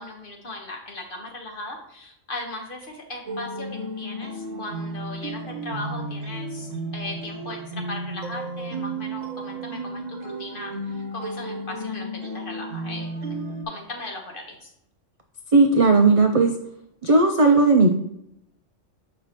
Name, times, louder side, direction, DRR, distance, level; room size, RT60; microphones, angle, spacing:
voice 1, 0.0-14.7, left 2 dB, 45° left, 1 dB, 1.3 m, -38 dB
sound 1, 3.3-13.6, right 2 dB, 75° right, 1.2 m, -33 dB
voice 2, 15.5-16.5 17.0-17.9, right 3 dB, 60° right, 4 dB, 0.3 m, -16 dB
6.8 x 5.4 x 2.9 m, 0.77 s
omnidirectional pair, 1.3 m